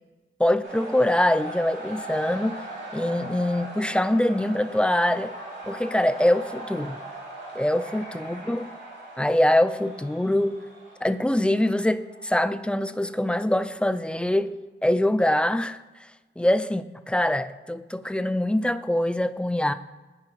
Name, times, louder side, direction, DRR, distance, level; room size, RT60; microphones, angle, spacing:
voice 1, 0.4-2.5 2.9-5.4 5.7-7.0 7.6-8.7 9.2-10.6 11.0-15.8 16.4-19.7, left 1 dB, 5° left, 10 dB, 0.3 m, -24 dB
sound 1, 0.6-14.4, right 2 dB, 75° right, 2.4 m, -40 dB
13.5 x 4.7 x 3.0 m, 1.2 s
wide cardioid pair, 65°, 19 cm